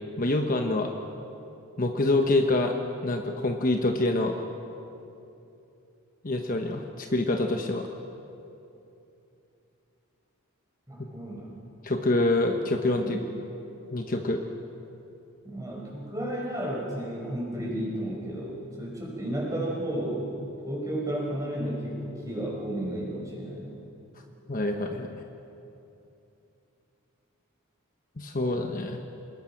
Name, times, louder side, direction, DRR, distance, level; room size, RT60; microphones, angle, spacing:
voice 1, 0.2-0.9 1.8-2.7 3.0-4.3 6.2-7.9 11.8-13.2 13.9-14.4 24.5-25.2 28.2-29.0, left 2 dB, 40° left, 4 dB, 1.1 m, -26 dB
voice 2, 10.9-11.5 13.0-13.2 15.4-20.3 20.6-23.8, right 1 dB, 15° right, -3 dB, 5.8 m, -33 dB
27.0 x 20.5 x 6.0 m, 2.8 s
head